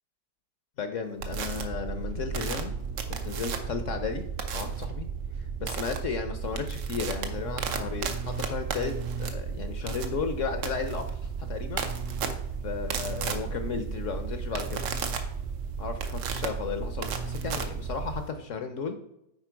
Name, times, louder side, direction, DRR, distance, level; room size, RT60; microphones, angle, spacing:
voice 1, 0.8-2.7 3.1-4.2 4.5-5.1 5.6-11.2 11.5-11.8 12.6-14.8 15.8-19.0, left 5 dB, 60° left, 8 dB, 0.9 m, -34 dB
sound 1, 1.2-18.2, right 6 dB, 60° right, 0.9 m, -35 dB
sound 2, 1.2-1.6 2.3-3.8 4.4-4.9 5.7-6.0 6.4-18.3, right 6 dB, 80° right, 1.5 m, -35 dB
9.7 x 4.4 x 4.5 m, 0.81 s
omnidirectional pair, 1.8 m